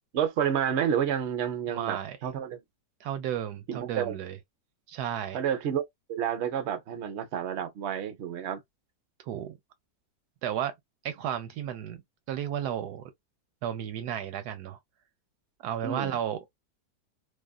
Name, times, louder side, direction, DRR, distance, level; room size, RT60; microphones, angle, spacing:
voice 1, 0.1-2.6 3.7-4.1 5.3-5.8 6.1-8.6 9.3-9.4 15.8-16.1, right 9 dB, 60° right, 0.7 m, -30 dB
voice 2, 1.7-2.2 3.0-4.4 4.9-5.4 9.2-9.6 10.4-10.8 11.0-12.0 12.3-13.1 13.6-14.8 15.6-16.6, right 10 dB, 75° right, 1.1 m, -33 dB
2.8 x 2.4 x 2.2 m
omnidirectional pair, 1.8 m